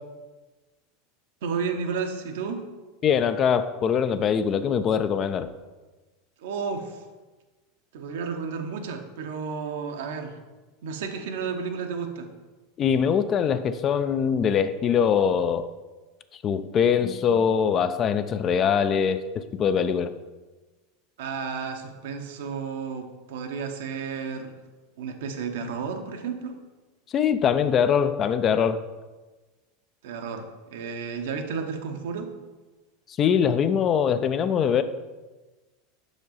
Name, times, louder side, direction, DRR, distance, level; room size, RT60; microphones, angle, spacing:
voice 1, 1.4-2.6 6.4-7.0 7.9-10.4 10.8-12.3 21.2-24.5 25.0-26.6 30.0-32.3, right 5 dB, 65° right, 6 dB, 0.7 m, -32 dB
voice 2, 3.0-5.5 12.8-15.7 16.4-19.2 19.5-20.1 27.1-28.8 33.2-34.8, left 7 dB, 35° left, 11 dB, 0.4 m, -22 dB
6.1 x 5.0 x 4.0 m, 1.2 s
figure-of-eight pair, 80°, 0 cm